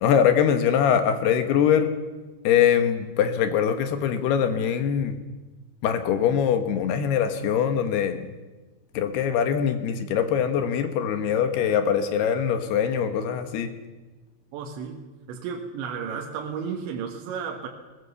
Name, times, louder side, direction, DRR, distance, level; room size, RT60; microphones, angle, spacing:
voice 1, 0.0-1.9 2.4-5.1 5.8-8.3 8.9-13.7, left 8 dB, 70° left, 8 dB, 3.1 m, -23 dB
voice 2, 14.5-17.7, right 6 dB, 80° right, 1 dB, 3.8 m, -33 dB
21.5 x 20.5 x 7.0 m, 1.2 s
omnidirectional pair, 5.2 m